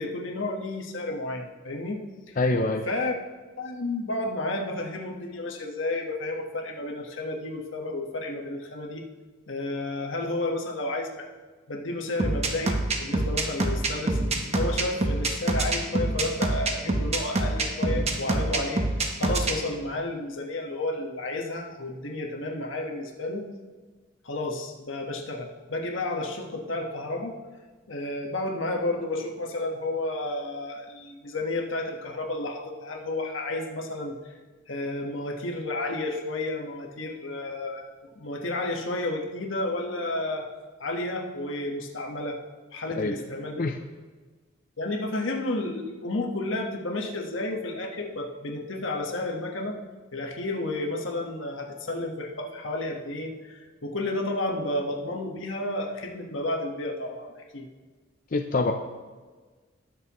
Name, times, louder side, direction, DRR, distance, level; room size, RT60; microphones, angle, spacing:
voice 1, 0.0-2.0 2.3-2.4 2.8-3.1 3.6-9.0 9.5-11.3 11.7-14.2 14.6-23.4 24.2-27.4 27.9-34.1 34.7-40.5 40.8-42.4 42.7-43.6 44.8-49.8 50.1-57.7, left 2 dB, 80° left, 2 dB, 1.4 m, -31 dB
voice 2, 2.4-2.8 43.0-43.1 43.6-43.8 58.3-58.7, left 3 dB, 45° left, 4 dB, 0.5 m, -25 dB
sound 1, 12.2-19.5, right 2 dB, 35° right, 1.1 m, -25 dB
20.0 x 6.7 x 3.1 m, 1.4 s
head